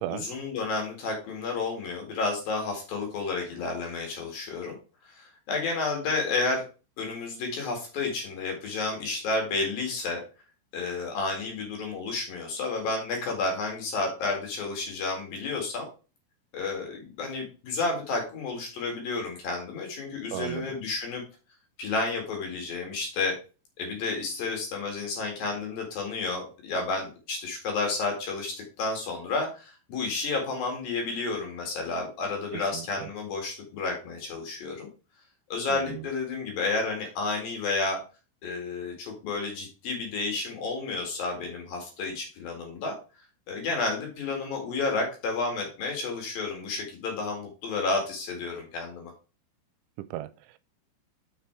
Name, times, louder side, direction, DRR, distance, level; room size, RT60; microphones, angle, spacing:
voice 1, 0.1-4.8 5.1-6.6 7.0-10.2 10.7-15.9 16.5-21.2 21.8-23.3 23.8-34.9 35.5-38.0 38.4-43.0 43.5-49.1, left 3 dB, 55° left, 3.5 m, -31 dB
voice 2, 20.3-20.8 32.5-33.1 35.7-36.1 50.0-50.6, right 15 dB, 85° right, 2.9 m, -36 dB
6.8 x 5.8 x 4.5 m
omnidirectional pair, 5.4 m